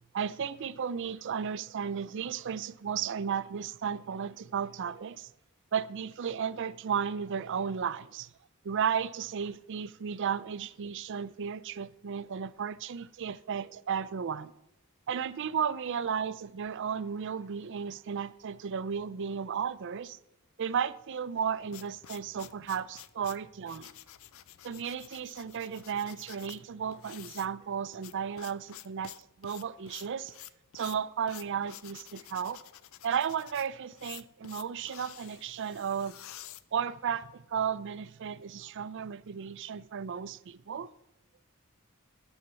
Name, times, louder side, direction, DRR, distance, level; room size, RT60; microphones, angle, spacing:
voice 1, 0.1-5.3 5.7-8.3 8.6-14.5 15.1-20.2 20.6-23.9 24.6-29.1 29.4-30.3 30.7-32.6 33.0-36.2 36.7-40.9, right 7 dB, 60° right, 0.4 m, -34 dB
sound 1, 21.3-37.3, left 12 dB, 65° left, 0.4 m, -50 dB
9.5 x 7.2 x 6.8 m
head